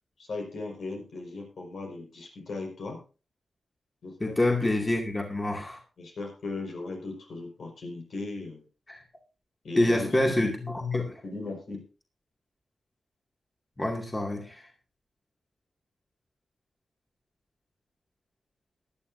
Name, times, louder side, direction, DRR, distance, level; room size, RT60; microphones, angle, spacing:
voice 1, 0.2-3.0 4.0-4.8 6.0-8.6 9.6-10.5 11.2-11.8, left 3 dB, 75° left, 1 dB, 5.3 m, -37 dB
voice 2, 4.2-5.8 8.9-9.0 9.8-11.2 13.8-14.6, left 1 dB, 20° left, 1 dB, 2.4 m, -27 dB
18.0 x 11.5 x 2.7 m, 0.34 s
wide cardioid pair, 95°, 0 cm